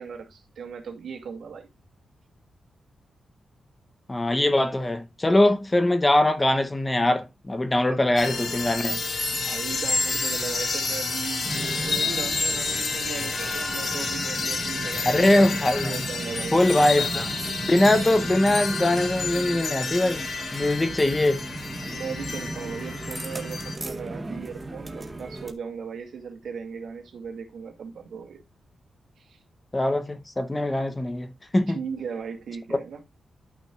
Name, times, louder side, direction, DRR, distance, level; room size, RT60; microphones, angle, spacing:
voice 1, 0.0-1.7 7.9-8.0 9.3-15.4 15.9-16.9 21.9-28.4 29.2-29.4 31.7-33.0, right 6 dB, 70° right, 2.3 m, -37 dB
voice 2, 4.1-9.0 15.1-16.0 16.5-17.3 17.7-20.2 20.5-21.5 29.7-31.8, left 1 dB, 15° left, 0.7 m, -22 dB
sound 1, 8.2-23.8, left 3 dB, 45° left, 2.3 m, -30 dB
sound 2, 11.4-25.5, right 2 dB, 15° right, 0.9 m, -36 dB
11.5 x 6.0 x 2.4 m
wide cardioid pair, 175°, 0 cm